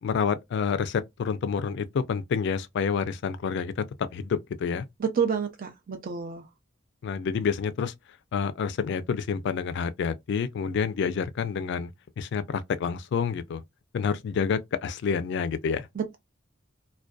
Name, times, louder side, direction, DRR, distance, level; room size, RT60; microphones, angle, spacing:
voice 1, 0.0-3.8 4.1-4.8 7.0-7.9 8.3-11.9 12.2-13.6 13.9-15.9, left 6 dB, 60° left, 0.3 m, -28 dB
voice 2, 5.0-6.4 16.0-16.2, right 6 dB, 45° right, 0.4 m, -29 dB
2.5 x 2.2 x 2.2 m
head